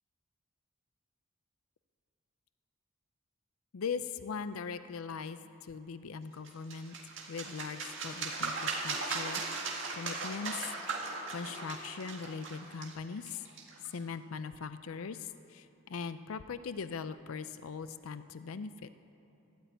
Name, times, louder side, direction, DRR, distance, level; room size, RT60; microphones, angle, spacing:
voice 1, 3.7-7.0 7.3-9.4 9.9-10.7 11.0-13.4 13.9-18.9, left 5 dB, 85° left, 12 dB, 0.5 m, -40 dB
sound 1, 6.4-14.0, right 4 dB, 60° right, 2.0 m, -38 dB
12.5 x 12.5 x 9.0 m, 2.9 s
head